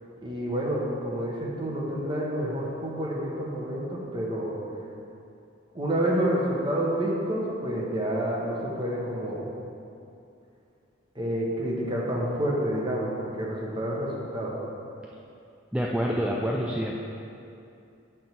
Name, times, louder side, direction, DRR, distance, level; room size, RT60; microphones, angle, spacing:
voice 1, 0.2-4.6 5.7-9.5 11.1-14.6, right 1 dB, 25° right, -4 dB, 1.2 m, -29 dB
voice 2, 15.7-17.0, equal, 5° right, -2 dB, 0.4 m, -27 dB
8.9 x 3.6 x 5.8 m, 2.6 s
head